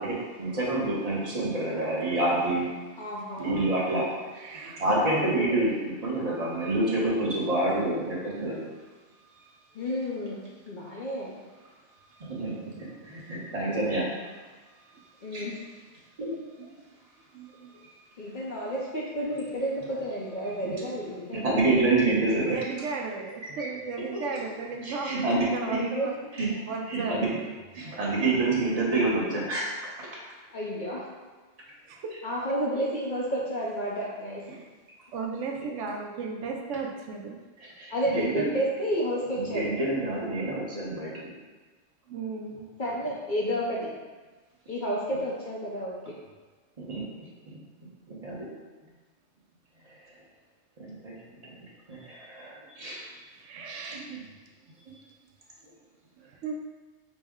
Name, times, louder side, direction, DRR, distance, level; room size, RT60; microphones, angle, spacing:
voice 1, 0.0-2.7 3.4-4.1 4.6-5.7 6.0-8.6 12.2-14.1 15.3-15.5 16.2-16.3 20.6-20.8 21.3-22.6 23.6-23.7 24.8-25.5 25.7-25.8 26.4-26.5 26.9-27.3 27.7-30.1 37.6-38.5 39.4-41.3 46.8-47.3 47.5-47.6 48.1-48.5 50.8-51.1 51.4-51.6 51.9-53.2 53.9-54.2 54.8-54.9, right 2 dB, 35° right, -5 dB, 0.8 m, -28 dB
voice 2, 3.0-3.5 5.1-5.6 9.7-11.4 15.2-15.6 18.2-21.9 25.7-26.1 30.5-31.1 32.2-34.4 37.9-39.6 42.8-43.9 44.7-46.1, equal, 50° left, -4 dB, 0.6 m, -31 dB
voice 3, 4.3-4.8 16.6-16.8 17.3-17.7 22.5-26.1 26.7-27.5 31.9-32.1 34.5-34.6 35.1-37.4 41.1-41.2 42.1-42.7 52.9-53.0 53.3-54.2 56.2-56.5, right 4 dB, 80° right, 1 dB, 0.9 m, -35 dB
5.2 x 2.0 x 3.5 m, 1.3 s
omnidirectional pair, 1.3 m